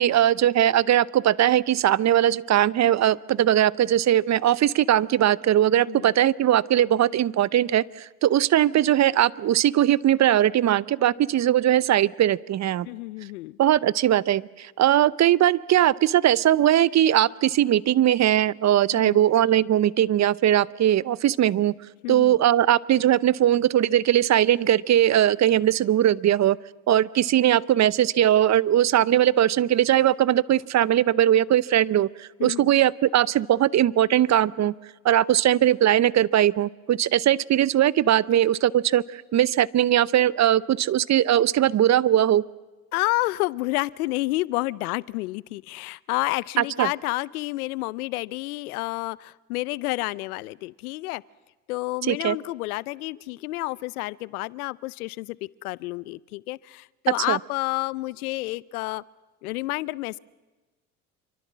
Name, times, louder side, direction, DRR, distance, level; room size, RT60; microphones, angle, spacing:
voice 1, 0.0-12.9 13.6-21.7 22.1-26.6 26.9-34.7 35.0-42.4 46.6-46.9 52.1-52.4 57.3-57.4, right 11 dB, 40° right, 21 dB, 0.8 m, -20 dB
voice 2, 12.8-13.6 18.9-19.2 22.0-22.4 32.4-32.7 42.9-51.2 51.7-59.0 59.4-60.2, left 20 dB, 85° left, 22 dB, 0.7 m, -30 dB
27.0 x 24.0 x 7.4 m, 1.2 s
hypercardioid pair, 75°, 43 cm